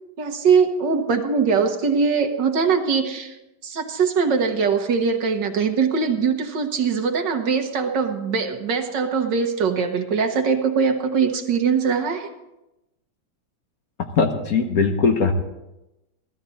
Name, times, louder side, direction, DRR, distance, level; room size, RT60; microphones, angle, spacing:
voice 1, 0.2-3.3 3.6-12.3, right 5 dB, 70° right, 5 dB, 1.8 m, -21 dB
voice 2, 14.2-15.3, left 5 dB, 55° left, 5 dB, 1.4 m, -20 dB
16.0 x 13.0 x 4.1 m, 0.95 s
omnidirectional pair, 2.0 m